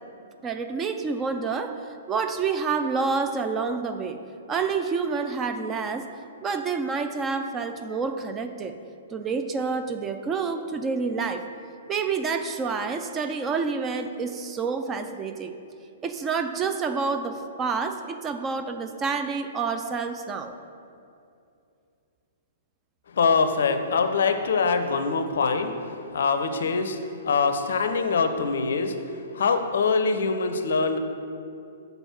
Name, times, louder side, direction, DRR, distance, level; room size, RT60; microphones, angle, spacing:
voice 1, 0.4-4.2 4.5-6.1 6.4-8.8 9.1-11.4 11.9-15.6 16.0-20.5, right 5 dB, 20° right, 7 dB, 0.4 m, -28 dB
voice 2, 23.1-31.0, left 4 dB, 60° left, 8 dB, 0.5 m, -24 dB
7.0 x 3.9 x 5.9 m, 2.5 s
figure-of-eight pair, 110°, 0 cm